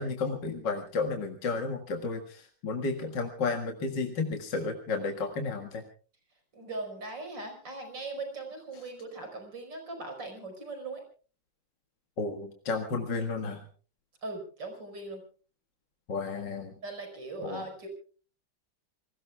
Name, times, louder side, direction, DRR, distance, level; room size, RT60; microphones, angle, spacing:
voice 1, 0.0-5.8 12.2-13.6 16.1-16.7 17.4-17.6, left 4 dB, 70° left, 3 dB, 2.4 m, -32 dB
voice 2, 6.5-11.0 14.2-15.2 16.8-17.9, right 2 dB, 75° right, 5 dB, 5.7 m, -39 dB
29.0 x 21.0 x 2.3 m, 0.38 s
omnidirectional pair, 2.0 m